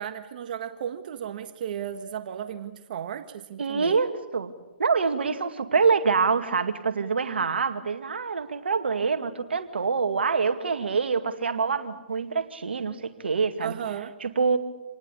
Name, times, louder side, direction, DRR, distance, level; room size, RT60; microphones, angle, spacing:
voice 1, 0.0-4.0 13.6-14.1, right 9 dB, 55° right, 8 dB, 1.6 m, -35 dB
voice 2, 3.6-4.5 4.8-13.7 14.2-14.6, right 5 dB, 80° right, 8 dB, 2.2 m, -25 dB
27.5 x 20.0 x 8.5 m, 1.0 s
hypercardioid pair, 140°, 6 cm